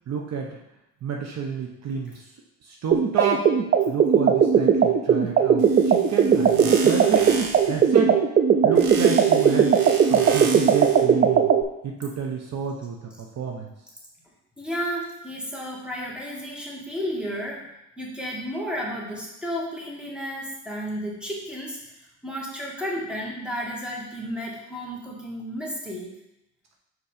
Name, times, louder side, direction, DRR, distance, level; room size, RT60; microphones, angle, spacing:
voice 1, 0.1-0.5 1.0-2.2 2.6-3.5 3.9-7.4 7.7-8.1 8.6-9.7 10.1-11.5 11.8-13.0 13.4-13.7, right 5 dB, 55° right, 0 dB, 1.0 m, -30 dB
sound 1, 2.9-11.6, right 7 dB, 35° right, 0.5 m, -18 dB
sound 2, 5.6-7.8 8.8-11.0, right 4 dB, 85° right, 0.9 m, -34 dB
voice 2, 14.6-17.7 18.0-26.1, equal, 5° right, -3 dB, 1.9 m, -32 dB
4.7 x 4.3 x 5.1 m, 0.86 s
supercardioid pair, 80°, 33 cm